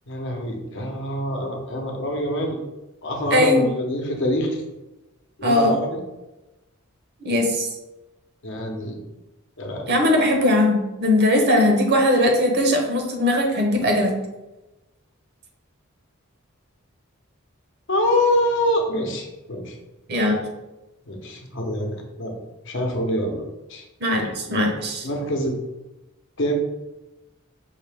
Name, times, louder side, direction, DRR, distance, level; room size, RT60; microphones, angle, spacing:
voice 1, 0.1-2.6 3.0-4.6 5.4-6.0 8.4-9.0 9.6-9.9 17.9-19.7 21.1-22.3 22.6-23.4 23.7-23.8 25.0-25.5 26.4-26.5, left 1 dB, 60° left, 1 dB, 0.9 m, -25 dB
voice 2, 3.3-3.7 5.4-5.7 7.2-7.7 9.9-14.1 20.1-20.4 24.0-25.1, left 1 dB, 50° right, 2 dB, 0.9 m, -19 dB
5.6 x 2.7 x 3.4 m, 1.0 s
head